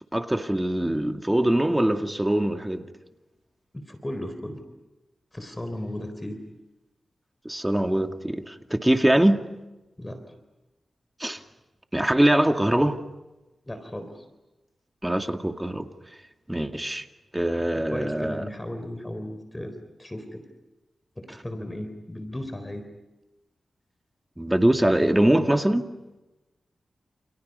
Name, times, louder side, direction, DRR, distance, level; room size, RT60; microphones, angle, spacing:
voice 1, 0.1-2.8 7.4-9.4 11.2-11.4 11.9-13.0 15.0-15.9 16.5-17.0 17.3-18.4 24.4-25.9, right 1 dB, 10° right, 2.3 m, -23 dB
voice 2, 3.7-4.6 5.3-6.4 10.0-10.2 13.7-14.3 17.5-20.4 21.2-22.9, left 1 dB, 15° left, 4.0 m, -36 dB
30.0 x 29.5 x 5.6 m
cardioid pair, 65°, 0 cm